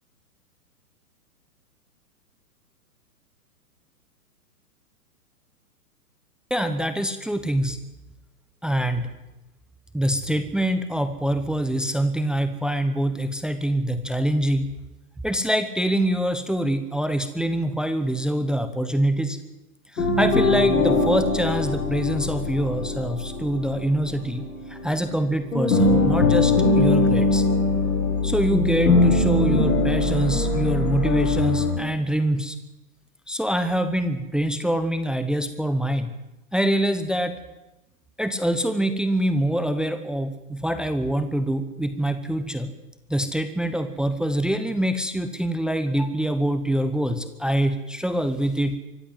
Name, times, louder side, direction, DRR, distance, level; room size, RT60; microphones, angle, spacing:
voice 1, 6.5-7.8 8.6-9.1 9.9-14.7 15.2-19.4 19.9-27.4 28.2-32.6 33.3-36.2 36.5-37.4 38.2-42.7 43.1-48.8, right 1 dB, ahead, 10 dB, 0.8 m, -25 dB
sound 1, 20.0-25.2 25.5-31.8, left 2 dB, 80° left, 7.4 m, -22 dB
24.5 x 15.0 x 7.9 m, 0.96 s
hypercardioid pair, 120°, 46 cm